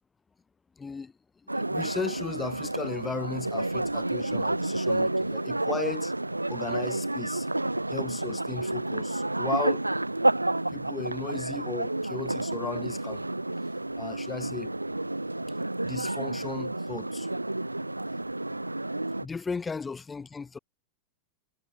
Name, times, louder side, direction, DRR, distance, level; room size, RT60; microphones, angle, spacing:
voice 1, 0.8-1.1 1.5-6.1 6.5-7.5 7.9-9.9 10.7-13.3 14.0-14.8 15.8-17.3 19.1-20.6, left 4 dB, 15° left, 1.8 m, -36 dB
sound 1, 1.5-19.3, right 2 dB, 85° right, 0.5 m, -30 dB
figure-of-eight pair, 90°, 0 cm